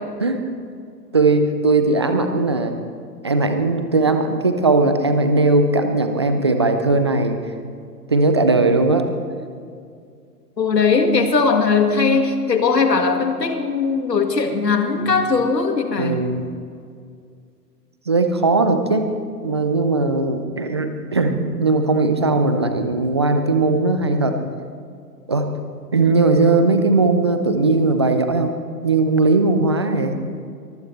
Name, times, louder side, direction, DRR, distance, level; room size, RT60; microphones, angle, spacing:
voice 1, 1.1-2.7 3.2-7.4 8.1-9.1 16.0-16.5 18.1-19.1 19.4-24.4 25.3-25.5 25.9-28.6 28.8-30.2, right 3 dB, 20° right, 6 dB, 0.4 m, -18 dB
voice 2, 10.6-16.2, left 4 dB, 85° left, 5 dB, 2.1 m, -19 dB
23.5 x 15.0 x 3.2 m, 2.3 s
figure-of-eight pair, 125°, 49 cm